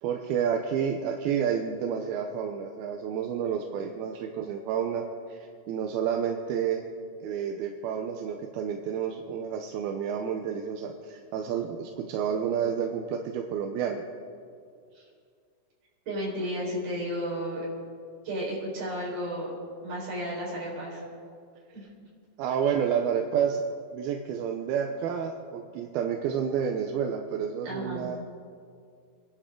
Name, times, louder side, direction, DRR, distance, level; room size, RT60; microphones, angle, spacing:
voice 1, 0.0-6.8 7.2-14.0 22.4-23.6 23.9-28.3, right 8 dB, 75° right, 3 dB, 2.6 m, -30 dB
voice 2, 16.1-17.7 18.2-19.5 19.8-21.0 21.7-21.9 27.6-28.1, equal, 60° right, -5 dB, 6.3 m, -33 dB
28.0 x 11.5 x 3.8 m, 2.3 s
omnidirectional pair, 4.6 m